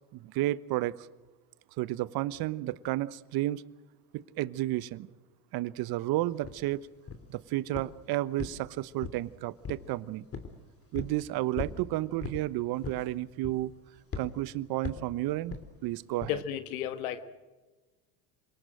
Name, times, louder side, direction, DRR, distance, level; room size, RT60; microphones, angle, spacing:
voice 1, 0.1-1.1 1.8-3.6 4.1-5.1 5.5-6.8 7.3-10.3 10.9-13.7 14.2-16.4, right 16 dB, 55° right, 17 dB, 1.1 m, -32 dB
sound 1, 6.4-6.6 7.1-7.4 7.7-8.0 8.4-9.3 9.6-9.9 10.3-10.6 10.9-11.2 11.6-11.8 12.2-12.4 12.8-13.1 13.4-13.7 14.1-14.3 14.8-15.1 15.5-15.7 16.2-16.4, left 5 dB, 30° left, 3.2 m, -38 dB
voice 2, 16.3-17.2, left 10 dB, 80° left, 10 dB, 1.6 m, -33 dB
28.0 x 18.5 x 7.8 m, 1.2 s
hypercardioid pair, 90°, 43 cm